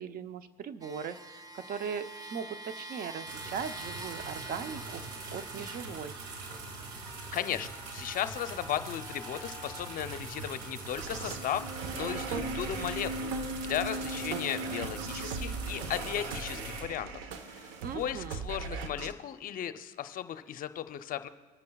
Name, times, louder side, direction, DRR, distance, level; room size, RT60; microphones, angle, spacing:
voice 1, 0.0-6.2 17.8-18.5, right 7 dB, 45° right, 11 dB, 0.7 m, -39 dB
sound 1, 0.8-11.2 12.0-12.1, right 2 dB, 20° right, 0.9 m, -47 dB
sound 2, 3.3-16.8, right 3 dB, 90° right, 2.1 m, -43 dB
voice 2, 7.3-11.7 11.9-13.4 13.6-17.1 17.4-21.3, left 10 dB, 45° left, 10 dB, 0.6 m, -36 dB
sound 3, 10.9-19.1, right 3 dB, 70° right, 1.0 m, -38 dB
23.0 x 9.5 x 2.3 m, 1.3 s
supercardioid pair, 100°, 21 cm